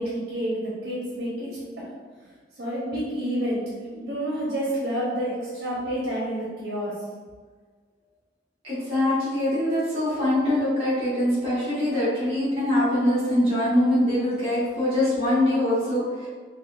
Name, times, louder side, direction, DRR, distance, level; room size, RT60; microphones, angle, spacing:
voice 1, 0.0-1.9 2.6-3.6 3.9-6.9, equal, 85° right, -7 dB, 0.9 m, -29 dB
voice 2, 8.6-16.3, left 1 dB, 35° right, -11 dB, 1.3 m, -23 dB
3.9 x 2.5 x 2.5 m, 1.5 s
head